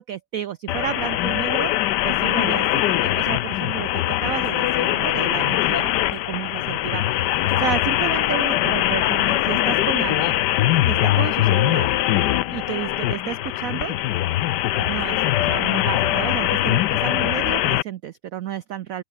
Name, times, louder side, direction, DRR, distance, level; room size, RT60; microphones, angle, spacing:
voice 1, 0.0-1.7 2.0-10.3 10.9-11.9 12.5-13.9 14.8-19.0, right 11 dB, 90° right, 0.7 m, -31 dB
sound 1, 0.7-17.8, left 14 dB, 70° left, 1.1 m, -22 dB
sound 2, 2.5-2.9 4.4-4.8 6.1-6.5 7.5-7.9 9.1-9.7 10.7-11.2 12.0-12.6 13.5-13.9 14.9-15.4, left 2 dB, 50° left, 8.0 m, -61 dB
open air
omnidirectional pair, 2.2 m